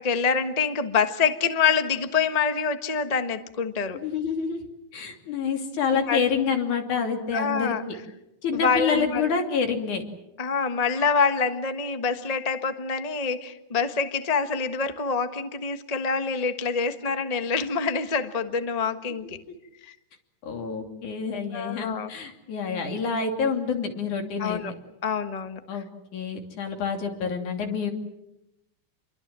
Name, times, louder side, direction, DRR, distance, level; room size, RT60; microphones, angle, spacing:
voice 1, 0.0-4.0 6.1-6.3 7.3-7.8 8.5-9.2 10.4-19.4 19.9-20.0 21.5-22.1 24.4-24.7 25.0-25.6, left 5 dB, 50° left, 8 dB, 0.4 m, -26 dB
voice 2, 4.0-7.9 8.4-10.0 20.4-24.6 25.7-25.9 26.1-27.9, left 5 dB, 85° left, 4 dB, 4.4 m, -28 dB
28.5 x 23.0 x 7.6 m, 0.87 s
omnidirectional pair, 3.4 m